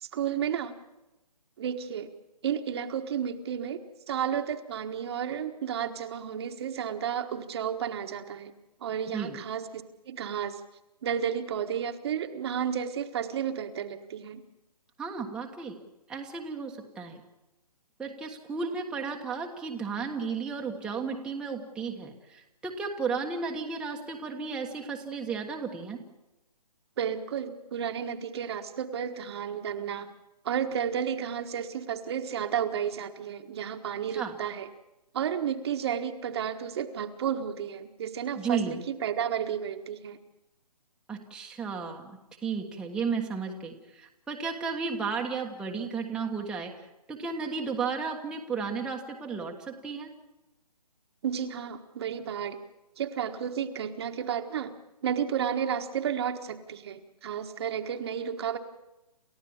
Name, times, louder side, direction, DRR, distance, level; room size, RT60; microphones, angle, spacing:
voice 1, 0.0-0.7 1.6-2.1 2.4-3.8 4.1-8.5 8.8-10.6 11.0-14.4 27.0-30.1 30.4-34.7 35.1-40.2 51.2-52.6 53.0-54.7 55.0-58.6, right 8 dB, 40° right, 6 dB, 1.5 m, -32 dB
voice 2, 15.0-15.7 16.1-17.2 18.0-26.0 34.1-34.3 38.3-38.8 41.1-46.7 47.1-50.1, right 5 dB, 5° right, -1 dB, 1.4 m, -33 dB
29.0 x 14.5 x 7.2 m, 0.96 s
hypercardioid pair, 150°, 21 cm